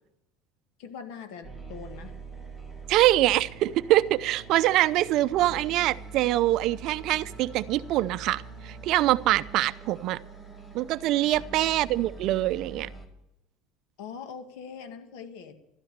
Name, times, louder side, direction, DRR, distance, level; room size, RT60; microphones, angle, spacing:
voice 1, 0.8-2.2 11.2-11.5 14.0-15.5, left 6 dB, 75° left, 8 dB, 1.9 m, -42 dB
sound 1, 1.4-13.1, right 4 dB, 10° left, 2.3 m, -44 dB
voice 2, 2.9-10.2 10.7-12.9, right 15 dB, 50° right, 15 dB, 0.6 m, -24 dB
13.0 x 12.5 x 6.7 m, 0.85 s
cardioid pair, 150°, 0 cm